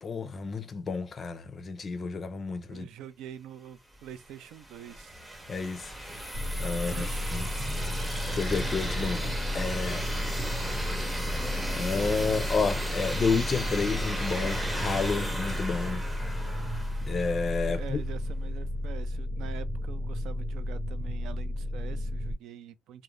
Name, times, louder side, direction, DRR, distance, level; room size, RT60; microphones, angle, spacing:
voice 1, 0.0-2.9 5.5-6.0 6.6-7.1 7.3-7.5 8.3-10.3 11.7-16.0 17.1-18.0, left 4 dB, 35° left, 0.4 m, -30 dB
voice 2, 2.7-5.2 6.7-7.8 17.7-23.0, right 10 dB, 75° right, 0.4 m, -45 dB
sound 1, 4.0-17.7, right 1 dB, 5° right, 0.6 m, -36 dB
sound 2, 6.3-22.3, left 1 dB, 60° right, 0.9 m, -33 dB
2.5 x 2.0 x 3.0 m
cardioid pair, 120°, 0 cm